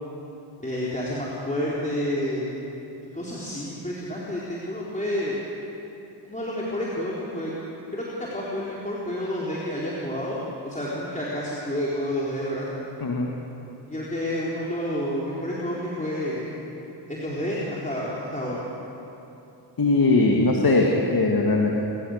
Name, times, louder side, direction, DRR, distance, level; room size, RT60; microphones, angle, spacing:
voice 1, 0.6-2.5 3.1-5.4 6.2-7.5 7.9-8.0 8.3-12.7 13.9-16.4 17.1-18.6, left 1 dB, 15° left, -6 dB, 4.2 m, -29 dB
voice 2, 19.8-21.7, left 3 dB, 50° left, 0 dB, 2.3 m, -20 dB
28.5 x 13.5 x 6.7 m, 3.0 s
supercardioid pair, 50°, 47 cm